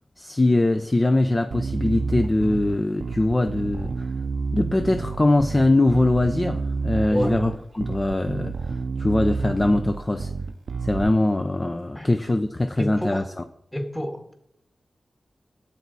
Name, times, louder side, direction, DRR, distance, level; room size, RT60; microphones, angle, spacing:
voice 1, 0.2-4.1 4.5-10.3 10.8-13.4, left 2 dB, 30° left, 0.7 m, -22 dB
Bass guitar, 1.5-11.1, right 4 dB, 75° right, 0.6 m, -29 dB
voice 2, 12.8-13.2 13.7-14.3, equal, 10° left, 1.9 m, -28 dB
12.5 x 8.4 x 4.1 m
cardioid pair, 60°, 0 cm